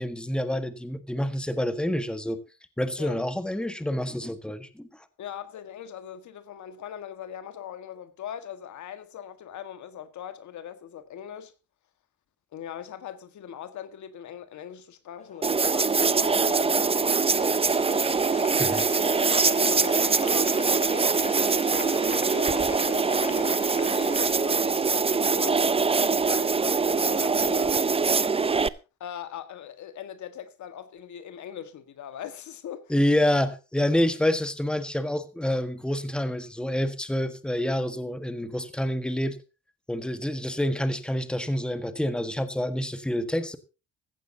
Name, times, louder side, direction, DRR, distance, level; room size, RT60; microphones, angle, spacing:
voice 1, 0.0-2.4 2.8-4.9 18.6-18.9 32.9-39.4 39.9-43.6, left 1 dB, 5° left, 1.5 m, -27 dB
voice 2, 5.2-11.5 12.5-18.3 18.9-25.6 26.0-27.8 29.0-32.9, left 9 dB, 70° left, 1.7 m, -40 dB
Applause, 15.2-24.3, left 3 dB, 25° left, 3.0 m, -40 dB
sound 1, 15.4-28.7, right 4 dB, 20° right, 0.6 m, -23 dB
15.0 x 15.0 x 2.8 m
cardioid pair, 90°, 30 cm